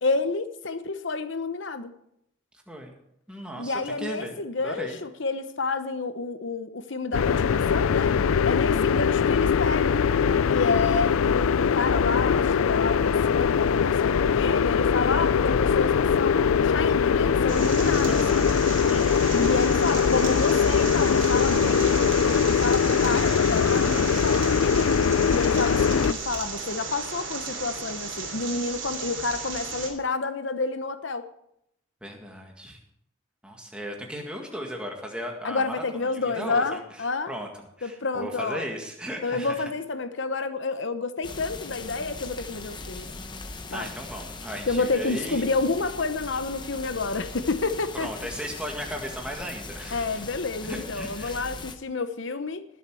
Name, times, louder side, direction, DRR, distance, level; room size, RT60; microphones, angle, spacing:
voice 1, 0.0-1.9 3.6-8.2 8.4-10.0 10.5-18.2 19.3-22.2 22.5-25.0 25.3-31.2 35.4-37.3 37.8-38.7 39.2-43.1 43.7-43.9 44.7-48.3 49.9-52.6, left 3 dB, 65° left, 0.9 m, -29 dB
voice 2, 3.3-5.0 18.0-18.5 18.9-19.3 22.9-24.6 32.0-32.8 33.4-36.8 37.3-37.5 37.8-39.6 43.7-45.5 47.9-50.1 50.6-51.4, equal, 5° right, 1.8 m, -37 dB
sound 1, 7.1-26.1, left 6 dB, 85° left, 0.4 m, -22 dB
sound 2, 17.5-29.9, right 4 dB, 65° right, 3.3 m, -34 dB
sound 3, 41.2-51.8, left 3 dB, 20° left, 0.9 m, -40 dB
19.5 x 7.4 x 4.8 m
head